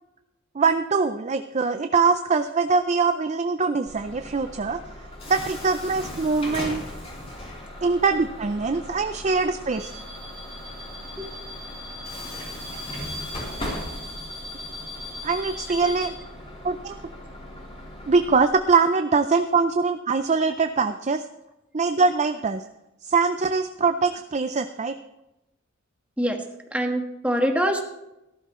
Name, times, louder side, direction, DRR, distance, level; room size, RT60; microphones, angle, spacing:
voice 1, 0.5-4.8 5.3-6.8 7.8-9.9 15.2-16.1 16.6-17.0 18.1-21.2 21.7-22.6 23.0-24.9, right 4 dB, 35° right, 8 dB, 0.5 m, -23 dB
Bus / Alarm, 3.9-18.5, left 1 dB, 30° left, 3.7 m, -37 dB
voice 2, 26.7-27.9, equal, 5° right, 3 dB, 1.4 m, -24 dB
18.0 x 12.0 x 3.1 m, 0.92 s
head